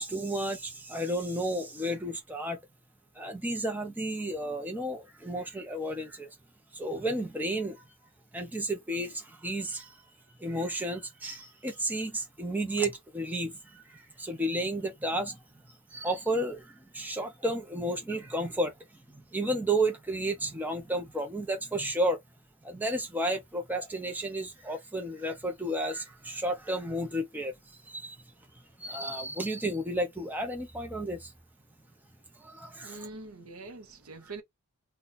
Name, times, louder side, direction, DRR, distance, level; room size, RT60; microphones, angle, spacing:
voice 1, 0.0-2.6 3.2-6.3 6.7-7.8 8.3-9.9 10.4-15.4 15.9-18.7 19.1-22.2 22.6-27.5 27.8-28.2 28.8-31.3 32.4-33.0, right 1 dB, 10° right, 0.7 m, -32 dB
voice 2, 32.8-34.4, right 3 dB, 70° right, 0.8 m, -44 dB
2.7 x 2.3 x 4.0 m
head